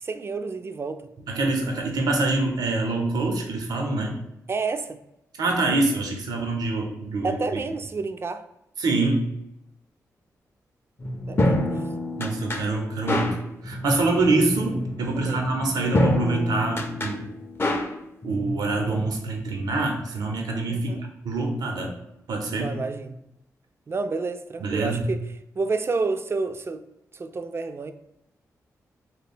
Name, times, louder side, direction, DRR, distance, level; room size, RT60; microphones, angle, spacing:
voice 1, 0.0-1.0 4.5-5.0 7.2-8.4 11.3-11.7 15.2-15.5 20.7-21.0 22.4-23.2 23.9-25.2 25.6-26.8 27.1-27.9, right 4 dB, 40° right, 0.3 m, -29 dB
voice 2, 1.3-4.1 5.4-7.4 8.8-9.2 12.2-13.4 13.6-17.3 18.2-21.0 21.2-21.9 22.3-22.7 24.6-25.1, right 2 dB, 85° right, 0.7 m, -25 dB
sound 1, 11.0-19.1, left 1 dB, 35° left, 0.5 m, -27 dB
3.1 x 2.2 x 4.2 m
cardioid pair, 60°, 7 cm